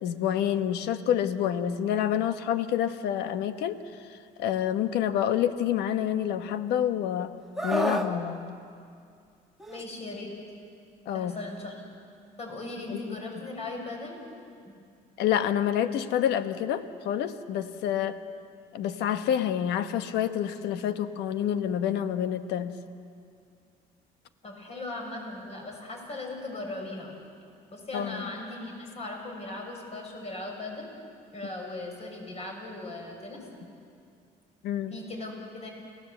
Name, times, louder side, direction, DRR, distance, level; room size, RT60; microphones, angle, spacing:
voice 1, 0.0-3.8 4.1-7.3 7.6-8.4 11.1-11.3 12.9-13.2 15.2-18.2 18.7-22.7 27.9-28.2 34.6-34.9, left 10 dB, 85° left, 10 dB, 1.2 m, -28 dB
Screaming, 7.6-8.1 9.6-9.8, right 1 dB, ahead, 1.8 m, -28 dB
voice 2, 9.7-10.3 11.1-11.8 12.4-14.2 14.6-14.7 24.4-27.1 27.7-30.9 31.3-33.4 34.9-35.7, left 2 dB, 40° left, 1 dB, 6.6 m, -38 dB
29.5 x 17.5 x 8.0 m, 2.4 s
cardioid pair, 110°, 17 cm